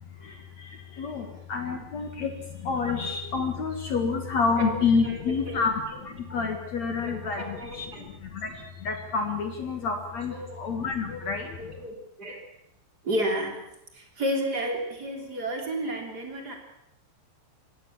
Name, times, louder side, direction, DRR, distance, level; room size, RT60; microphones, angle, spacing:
voice 1, 0.0-11.8, left 5 dB, 55° left, 5 dB, 2.1 m, -29 dB
voice 2, 5.0-5.7 7.0-8.1 10.3-10.6 11.1-11.2 11.6-12.4 13.0-13.6 13.9-16.5, equal, 25° right, 2 dB, 3.3 m, -32 dB
24.5 x 17.5 x 7.2 m, 0.83 s
omnidirectional pair, 5.6 m